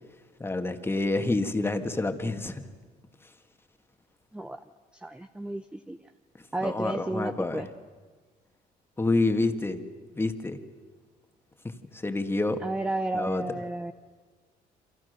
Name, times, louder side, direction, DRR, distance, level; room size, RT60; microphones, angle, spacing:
voice 1, 0.4-2.6 6.6-7.7 9.0-9.8 10.2-10.6 11.6-12.6 13.1-13.4, left 2 dB, 15° left, 6 dB, 1.9 m, -28 dB
voice 2, 5.0-6.0 6.5-7.7 12.6-13.9, right 2 dB, 5° right, 9 dB, 0.8 m, -32 dB
29.0 x 25.5 x 6.7 m, 1.5 s
cardioid pair, 110°, 17 cm